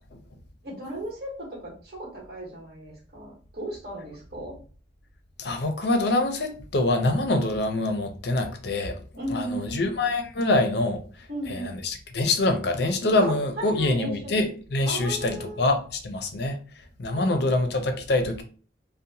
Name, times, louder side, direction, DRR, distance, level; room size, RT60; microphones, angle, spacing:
voice 1, 0.6-4.6 9.2-10.0 11.3-11.8 13.2-14.4 14.8-15.6 17.1-17.7, right 1 dB, 55° right, -3 dB, 1.1 m, -36 dB
voice 2, 5.4-9.0 9.3-11.0 11.5-16.6 17.0-18.4, left 2 dB, 55° left, 5 dB, 0.5 m, -25 dB
2.8 x 2.1 x 2.6 m, 0.39 s
head